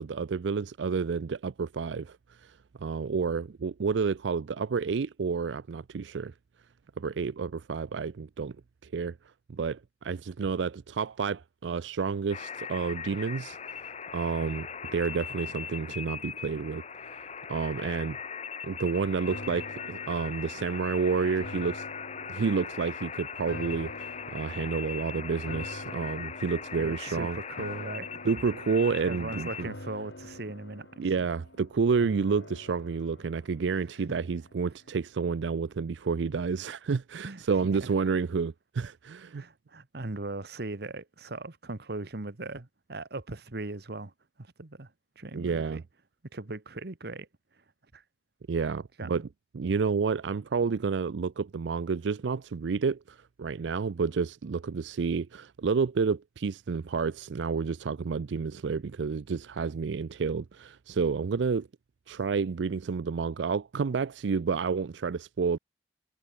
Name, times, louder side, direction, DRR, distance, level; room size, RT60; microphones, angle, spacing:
voice 1, 0.0-6.3 7.0-8.5 8.8-9.2 9.5-18.2 18.6-21.9 22.3-27.4 28.2-29.7 31.0-39.4 45.3-45.8 48.5-49.2 49.5-61.7 62.1-65.6, right 5 dB, 90° right, 0.5 m, -30 dB
sound 1, 12.3-29.6, left 6 dB, 40° left, 1.1 m, -40 dB
sound 2, 19.3-34.6 35.0-35.1, left 1 dB, 75° left, 4.1 m, -46 dB
voice 2, 26.8-28.1 29.1-30.9 31.2-31.3 37.2-37.4 39.3-44.1 44.4-44.9 45.2-45.8 46.3-47.3 47.9-48.0 49.0-49.3, right 2 dB, 60° right, 1.3 m, -39 dB
head